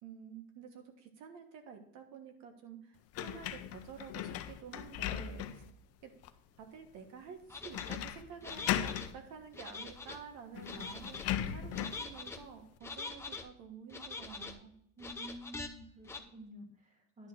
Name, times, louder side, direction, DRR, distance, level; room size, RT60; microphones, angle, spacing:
voice 1, 0.0-5.6 6.0-6.1 6.6-14.7, right 6 dB, 65° right, 6 dB, 1.4 m, -50 dB
sound 1, 3.1-5.7 6.2-6.3 7.7-8.2 8.5-9.1 10.1-10.2 10.5-12.0, left 11 dB, 50° left, 0.7 m, -37 dB
sound 2, 7.5-8.0 8.4-9.1 9.5-10.2 10.6-11.3 11.7-12.4 12.8-13.4 13.9-14.6 15.0-15.7 16.1-16.2, left 4 dB, 10° left, 0.6 m, -44 dB
voice 2, 15.0-17.3, right 1 dB, 25° right, 2 dB, 2.0 m, -50 dB
10.5 x 3.7 x 5.8 m, 0.70 s
cardioid pair, 145°, 31 cm